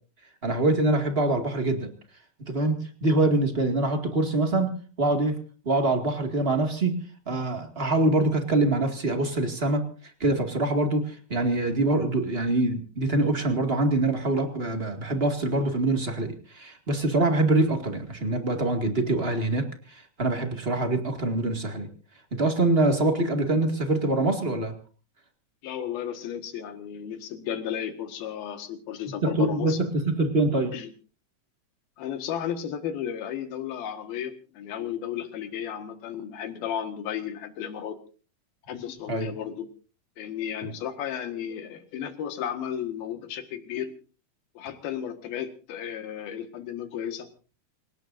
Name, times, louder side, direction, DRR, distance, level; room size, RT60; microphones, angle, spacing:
voice 1, 0.4-1.9 2.5-4.7 5.0-5.4 5.6-7.0 7.2-9.8 10.2-19.6 19.9-21.9 22.3-24.7 29.2-30.7 39.1-39.3 40.6-40.7, right 2 dB, 25° right, 4 dB, 1.4 m, -24 dB
voice 2, 25.6-29.8 30.7-30.9 32.0-38.0 38.7-39.7 40.2-43.9 44.6-47.3, left 9 dB, 75° left, 7 dB, 3.5 m, -34 dB
27.5 x 18.0 x 2.6 m, 0.38 s
omnidirectional pair, 4.4 m